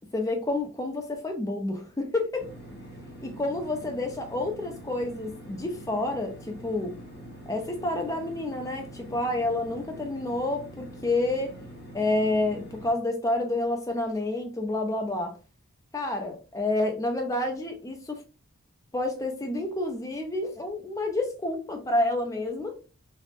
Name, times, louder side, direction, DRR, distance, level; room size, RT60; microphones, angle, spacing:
voice 1, 0.1-2.4 3.2-7.0 7.5-11.6 11.9-15.4 15.9-18.2 18.9-22.8, left 2 dB, 15° left, 0.4 m, -29 dB
sound 1, 2.4-12.9, equal, 45° left, 0.8 m, -44 dB
2.6 x 2.0 x 2.5 m
head